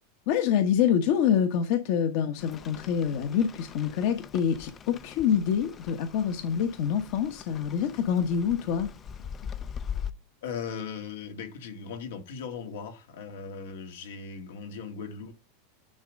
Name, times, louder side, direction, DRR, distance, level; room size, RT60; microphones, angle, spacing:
voice 1, 0.3-8.9, left 8 dB, 55° left, 1.2 m, -26 dB
Rain, 2.4-10.1, left 8 dB, 20° left, 0.4 m, -41 dB
voice 2, 10.4-15.3, left 6 dB, 80° left, 2.0 m, -38 dB
10.0 x 3.7 x 5.3 m
supercardioid pair, 155°, 0 cm